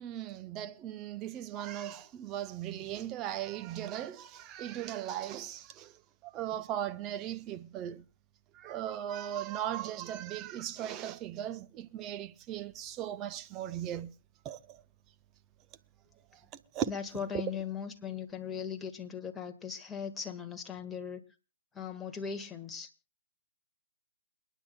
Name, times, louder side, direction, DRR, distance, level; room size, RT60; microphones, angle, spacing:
voice 1, 0.0-5.9 6.2-8.0 8.5-14.1 14.4-14.8 16.7-16.9 17.3-17.4, right 11 dB, 25° right, 0.6 m, -38 dB
voice 2, 16.9-21.2 21.7-22.9, left 7 dB, 10° left, 1.6 m, -39 dB
29.0 x 10.0 x 2.2 m
figure-of-eight pair, 135°, 0 cm